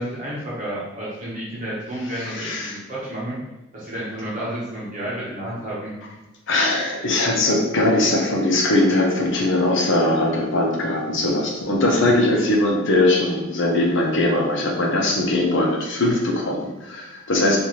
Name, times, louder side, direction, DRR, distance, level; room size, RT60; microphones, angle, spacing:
voice 1, 0.0-3.4 3.7-5.9 11.9-12.1, right 1 dB, 40° right, -7 dB, 0.9 m, -31 dB
voice 2, 2.2-2.8 6.5-17.6, left 1 dB, 60° left, 0 dB, 0.8 m, -20 dB
4.6 x 2.6 x 2.9 m, 1.0 s
head